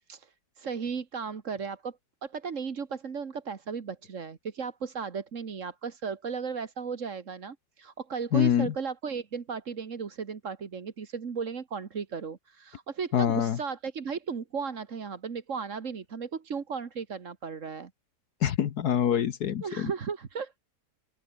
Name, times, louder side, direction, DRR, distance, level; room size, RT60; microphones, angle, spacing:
voice 1, 0.1-17.9 19.6-20.6, right 6 dB, 50° right, 1.9 m, -35 dB
voice 2, 8.3-8.7 13.1-13.6 18.4-19.9, left 9 dB, 70° left, 1.6 m, -25 dB
open air
omnidirectional pair, 1.8 m